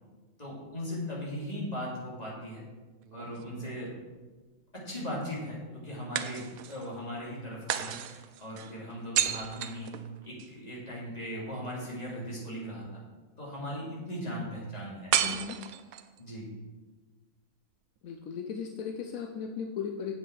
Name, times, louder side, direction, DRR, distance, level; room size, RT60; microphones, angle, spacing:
voice 1, 0.4-2.6 3.1-3.9 4.7-9.9 10.2-12.8 13.4-15.1 16.2-16.5, equal, 30° left, -6 dB, 3.0 m, -38 dB
sound 1, 3.0-4.1 6.1-6.9 7.7-10.5 15.1-16.2, right 10 dB, 90° right, 1.1 m, -33 dB
voice 2, 15.2-15.6 18.0-20.1, left 7 dB, 80° left, 4 dB, 1.1 m, -36 dB
8.0 x 7.8 x 4.7 m, 1.3 s
omnidirectional pair, 1.4 m